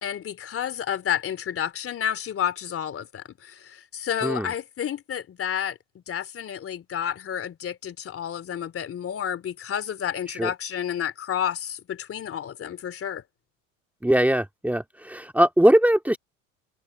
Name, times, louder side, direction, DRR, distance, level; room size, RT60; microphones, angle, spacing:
voice 1, 0.0-5.8 6.1-13.2, left 9 dB, 35° left, 3.3 m, -30 dB
voice 2, 14.0-16.2, right 1 dB, 5° right, 2.3 m, -20 dB
hypercardioid pair, 80°, 39 cm